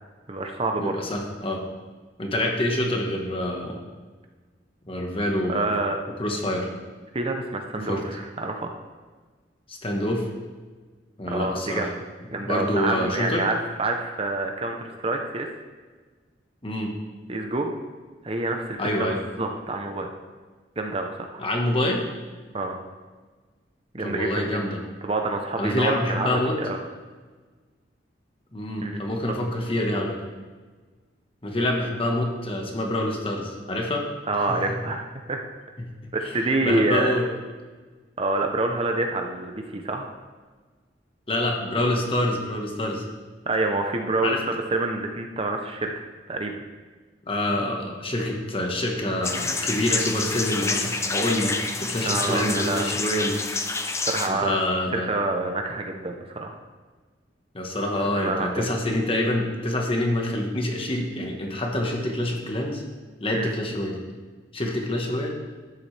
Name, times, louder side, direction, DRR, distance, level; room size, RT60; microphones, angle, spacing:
voice 1, 0.3-1.0 5.5-6.0 7.1-8.7 11.3-12.0 12.3-15.5 17.3-17.7 18.2-20.1 20.8-21.4 22.5-22.8 23.9-24.8 25.0-26.8 28.8-29.1 34.3-35.4 36.1-37.1 38.2-40.1 43.5-45.9 46.3-46.6 52.0-53.0 54.0-54.6 54.9-56.6 58.0-58.7 63.3-63.5, right 2 dB, 30° right, 3 dB, 0.8 m, -27 dB
voice 2, 0.8-1.6 2.2-3.8 4.8-5.7 6.2-6.7 7.8-8.0 9.7-10.3 11.2-11.9 12.4-13.4 16.6-16.9 18.8-19.2 21.4-22.0 24.0-24.8 25.6-26.6 28.5-30.2 31.4-34.1 34.5-34.6 36.0-37.2 41.3-43.0 44.2-44.4 47.3-53.4 54.3-55.1 57.5-62.8 63.2-64.0 64.5-65.3, left 1 dB, 30° left, 1 dB, 1.4 m, -26 dB
sound 1, 49.2-54.3, left 3 dB, 15° left, 0.6 m, -28 dB
12.5 x 9.4 x 3.4 m, 1.4 s
head